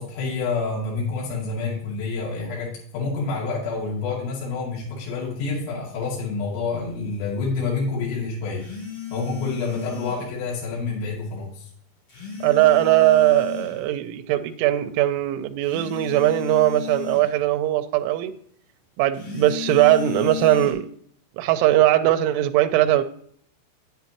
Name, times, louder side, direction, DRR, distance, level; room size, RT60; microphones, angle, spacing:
voice 1, 0.0-8.7 9.1-11.7, left 4 dB, 75° left, -5 dB, 4.7 m, -28 dB
sound 1, 8.6-10.3 12.1-13.8 15.6-17.3 19.1-20.7, left 12 dB, 35° left, 4.4 m, -34 dB
voice 2, 12.4-18.3 19.0-20.9 21.4-23.0, right 14 dB, 90° right, 8 dB, 3.0 m, -20 dB
10.0 x 9.3 x 2.9 m, 0.63 s
omnidirectional pair, 5.4 m